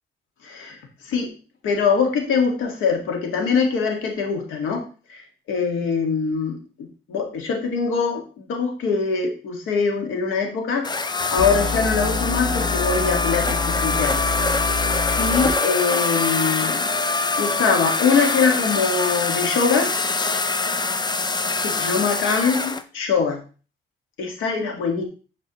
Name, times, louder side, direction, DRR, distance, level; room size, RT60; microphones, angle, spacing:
voice 1, 0.4-0.8 1.0-1.3 1.6-4.8 5.1-5.2 5.5-6.6 7.1-10.9 11.3-14.2 15.2-16.8 17.4-19.9 21.6-23.4 24.2-25.0, left 5 dB, 85° left, 3 dB, 1.8 m, -23 dB
sound 1, 10.8-22.8, left 3 dB, 20° left, 0.6 m, -24 dB
sound 2, 11.4-15.5, left 4 dB, 65° left, 3.1 m, -27 dB
9.6 x 4.6 x 3.0 m, 0.36 s
cardioid pair, 90°, 20 cm